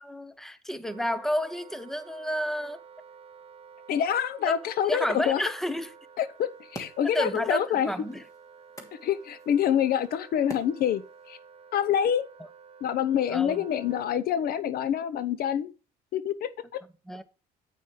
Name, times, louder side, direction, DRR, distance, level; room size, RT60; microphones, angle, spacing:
voice 1, 0.0-2.8 4.4-4.6 4.9-5.9 7.1-8.2 13.3-13.6 17.1-17.2, equal, ahead, 0.9 m, -30 dB
Wind instrument woodwind instrument, 0.8-14.2, right 6 dB, 35° right, 1.0 m, -51 dB
voice 2, 3.9-5.4 6.2-7.9 9.0-11.4 11.7-12.3 12.8-15.7 16.1-16.8, left 9 dB, 65° left, 0.7 m, -26 dB
sound 1, 6.4-11.4, equal, 20° left, 2.7 m, -48 dB
9.2 x 9.0 x 3.2 m
cardioid pair, 110°, 17 cm